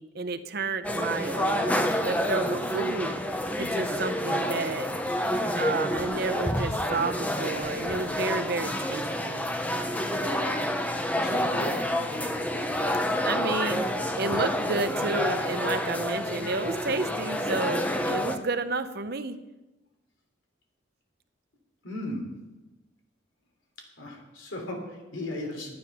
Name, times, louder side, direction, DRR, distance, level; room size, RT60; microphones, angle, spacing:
voice 1, 0.0-3.1 3.6-4.9 5.6-9.5 13.2-13.9 14.1-19.4, right 3 dB, 55° right, 11 dB, 0.7 m, -31 dB
sound 1, 0.8-18.4, equal, 10° left, 0.7 m, -28 dB
voice 2, 11.0-11.9 21.8-22.4 24.0-25.7, left 1 dB, 90° left, 1 dB, 3.3 m, -36 dB
11.0 x 9.6 x 6.0 m, 1.0 s
head